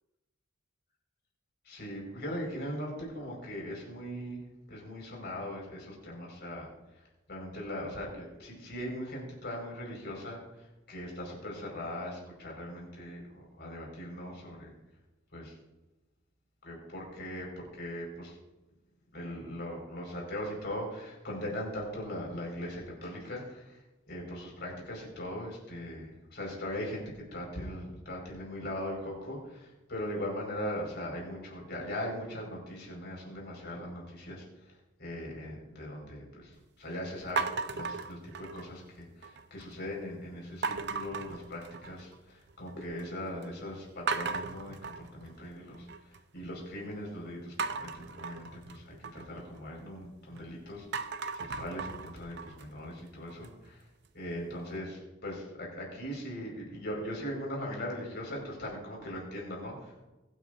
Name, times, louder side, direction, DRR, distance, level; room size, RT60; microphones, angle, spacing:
voice 1, 1.6-4.4 4.7-6.7 7.3-10.4 10.9-13.2 13.6-14.7 15.3-15.5 16.6-18.3 19.1-23.8 24.1-27.0 27.3-34.4 35.0-36.5 36.8-37.4 37.7-45.9 46.3-53.8 54.1-60.0, left 1 dB, 55° left, -1 dB, 5.0 m, -40 dB
sound 1, 37.4-38.8 39.2-39.8 40.6-42.2 42.5-43.1 43.4-43.5 44.1-46.2 47.6-50.4 50.8-53.7, right 4 dB, 55° right, 0.6 m, -37 dB
22.5 x 9.4 x 2.6 m, 1.0 s
head